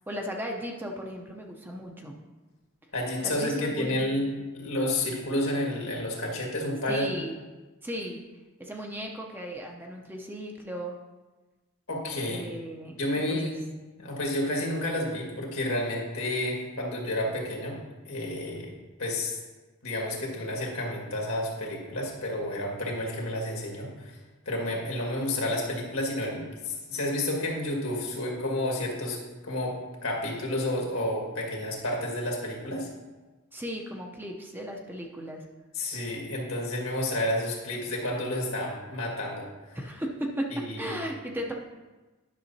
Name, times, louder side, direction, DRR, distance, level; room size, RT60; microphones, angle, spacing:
voice 1, 0.1-2.2 3.2-4.1 6.9-7.4 7.8-8.2 8.6-10.9 12.3-13.0 13.3-13.6 33.5-35.4 39.7-40.5 40.8-41.5, equal, 10° right, 1 dB, 0.6 m, -36 dB
voice 2, 2.9-7.1 11.9-12.4 13.0-13.6 14.0-17.8 18.1-18.7 19.0-19.4 19.8-24.2 24.5-29.2 29.4-32.9 35.7-39.8 40.5-41.0, left 1 dB, 75° left, -1 dB, 1.8 m, -30 dB
10.5 x 6.2 x 2.7 m, 1.2 s
head